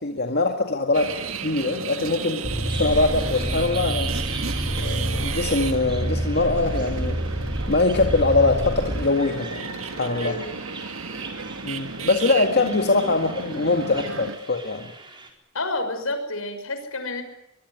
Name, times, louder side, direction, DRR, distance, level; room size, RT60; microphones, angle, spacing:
voice 1, 0.0-1.1 1.4-2.4 2.8-4.1 4.6-7.2 7.7-9.7 9.9-10.4 11.6-14.9, left 3 dB, 55° left, 3 dB, 2.1 m, -22 dB
sound 1, 0.9-14.4, right 5 dB, 90° right, 2.0 m, -33 dB
sound 2, 2.4-9.0, right 1 dB, ahead, 7.4 m, -28 dB
Bird vocalization bird call bird song, 2.5-15.3, right 3 dB, 25° right, 4.5 m, -42 dB
voice 2, 10.1-10.6 12.3-12.5 15.5-17.2, left 2 dB, 90° left, 8 dB, 6.1 m, -30 dB
24.0 x 23.0 x 9.6 m, 0.84 s
head